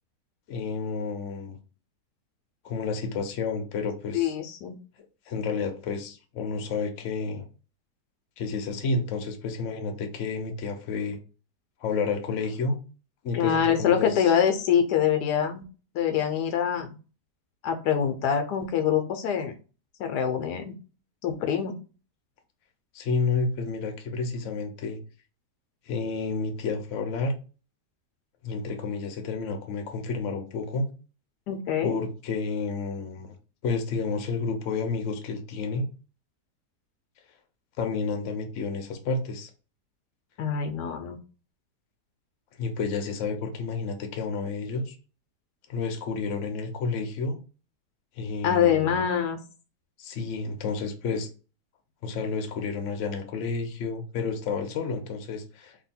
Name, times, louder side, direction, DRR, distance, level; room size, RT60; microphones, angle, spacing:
voice 1, 0.5-1.6 2.6-4.3 5.3-7.5 8.4-11.2 11.8-12.8 13.2-14.4 22.9-25.0 25.9-27.3 28.4-30.9 31.8-33.3 33.6-35.9 37.8-39.5 42.6-45.0 45.7-47.4 48.2-49.0 50.0-51.3 52.0-55.8, left 4 dB, 55° left, 5 dB, 0.9 m, -30 dB
voice 2, 4.1-4.8 13.3-15.6 15.9-16.9 17.6-19.5 20.0-20.7 21.2-21.7 31.5-32.0 40.4-41.2 48.4-49.4, left 8 dB, 75° left, 6 dB, 1.1 m, -25 dB
2.9 x 2.7 x 4.2 m, 0.34 s
omnidirectional pair, 1.8 m